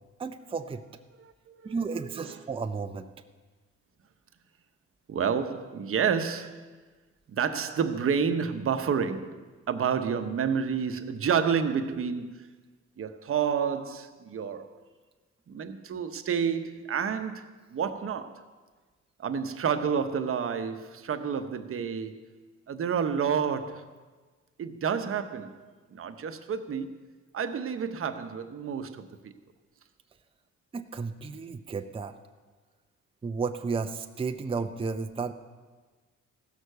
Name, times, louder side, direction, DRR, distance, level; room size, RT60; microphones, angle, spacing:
voice 1, 0.2-0.8 1.6-3.1 30.7-32.1 33.2-35.3, right 4 dB, 20° right, 0.5 m, -33 dB
voice 2, 1.2-1.7 2.1-2.5 5.1-6.7 7.3-9.4 9.7-12.4 13.0-14.8 15.5-18.4 19.2-22.2 22.7-23.9 24.6-26.9 27.3-29.3, right 7 dB, 45° right, 0.9 m, -30 dB
15.5 x 6.5 x 6.7 m
cardioid pair, 90°, 30 cm